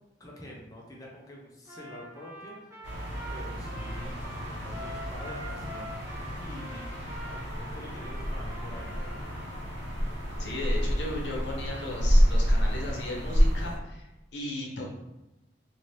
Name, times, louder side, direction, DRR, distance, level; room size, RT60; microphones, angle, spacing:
voice 1, 0.2-2.9 3.3-6.0 6.3-6.9 7.2-9.3, equal, 20° left, -3 dB, 0.5 m, -46 dB
Trumpet, 1.6-9.4, right 1 dB, 15° right, 0.7 m, -45 dB
sound 1, 2.8-13.8, equal, 80° right, 1.2 m, -29 dB
voice 2, 10.4-14.9, left 1 dB, 80° left, -2 dB, 0.8 m, -36 dB
2.8 x 2.6 x 3.1 m, 0.98 s
head